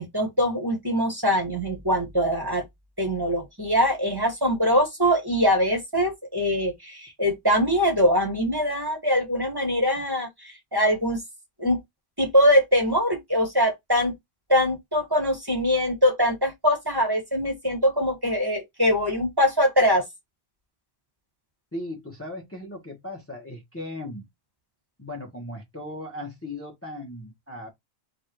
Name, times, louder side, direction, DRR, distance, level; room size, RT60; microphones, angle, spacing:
voice 1, 0.0-2.6 3.0-11.2 11.6-11.8 12.2-14.1 14.5-20.0, equal, 20° right, 1.7 m, -23 dB
voice 2, 21.7-24.3 25.0-27.7, left 1 dB, 15° left, 1.2 m, -37 dB
4.2 x 2.6 x 4.6 m
omnidirectional pair, 1.1 m